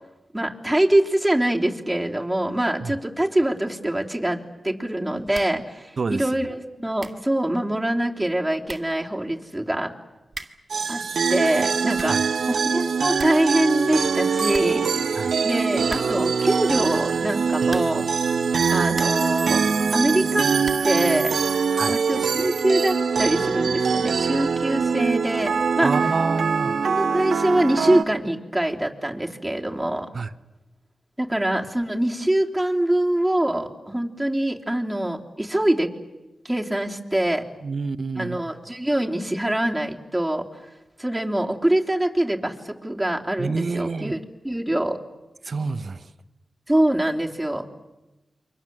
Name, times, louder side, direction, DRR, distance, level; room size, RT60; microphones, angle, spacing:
voice 1, 0.3-9.9 10.9-11.0 11.3-12.2 12.5-14.9 15.4-18.1 18.7-19.6 19.9-20.5 20.8-21.4 21.9-25.9 26.9-30.1 31.2-35.9 36.5-37.5 38.2-40.5 41.0-44.2 44.4-45.0 46.7-47.7, right 1 dB, 10° right, 0 dB, 3.4 m, -24 dB
sound 1, 5.3-5.7 6.0-6.1 6.7-6.8 7.0-7.3 8.3-8.4 8.6-9.0 10.3-10.7 11.7-12.3 12.7-12.8 13.0-13.5 13.8-13.9 14.2-14.3 14.5-15.3 15.9-16.4 17.6-18.1 18.6-19.4 20.6-21.0, right 3 dB, 45° right, 2.1 m, -40 dB
voice 2, 6.0-6.3 12.0-12.3 15.1-15.4 21.8-22.0 25.8-26.8 30.1-30.3 37.6-38.4 43.4-44.1 45.4-46.1, right 4 dB, 60° right, 13 dB, 1.1 m, -28 dB
sound 2, 10.7-28.0, right 5 dB, 75° right, 1.4 m, -23 dB
29.0 x 24.0 x 7.8 m, 1.1 s
cardioid pair, 50°, 0 cm